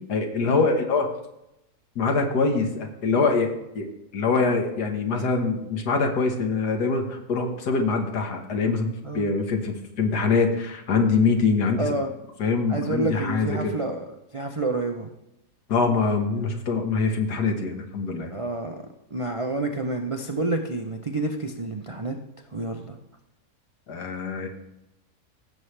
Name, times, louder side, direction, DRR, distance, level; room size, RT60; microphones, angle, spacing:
voice 1, 0.1-1.1 2.0-11.8 12.4-13.8 15.7-18.3 23.9-24.5, left 4 dB, 90° left, 4 dB, 1.9 m, -24 dB
voice 2, 11.8-12.1 12.7-15.1 18.3-22.2 22.5-23.0, right 2 dB, 55° right, 3 dB, 0.3 m, -29 dB
16.0 x 7.0 x 3.3 m, 0.87 s
omnidirectional pair, 1.7 m